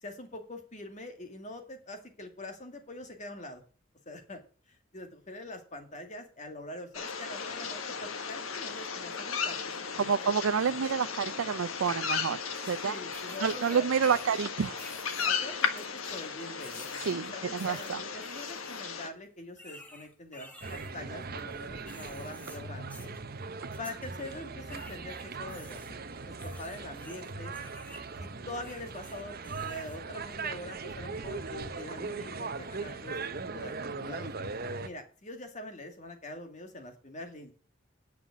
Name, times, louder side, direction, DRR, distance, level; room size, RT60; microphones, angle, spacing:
voice 1, 0.0-3.6 4.1-4.4 4.7-10.3 10.6-10.8 12.8-14.2 15.2-23.1 23.8-27.6 28.2-33.2 33.5-34.3 34.8-37.5, left 1 dB, 35° left, 2.2 m, -44 dB
sound 1, 6.9-19.1, left 6 dB, 85° left, 1.4 m, -36 dB
voice 2, 10.0-12.4 12.7-13.0 13.4-14.9 17.0-18.0, right 6 dB, 80° right, 0.4 m, -29 dB
sound 2, 11.9-12.0 12.5-14.4 14.8-16.3 16.6-17.1 17.6-18.8 19.6-20.9 21.4-22.6 22.9-23.2 23.7-24.4 24.7-28.0 28.5-30.0, left 1 dB, 10° left, 1.9 m, -51 dB
sound 3, 20.6-34.9, right 4 dB, 45° right, 0.9 m, -39 dB
9.5 x 5.8 x 8.4 m
head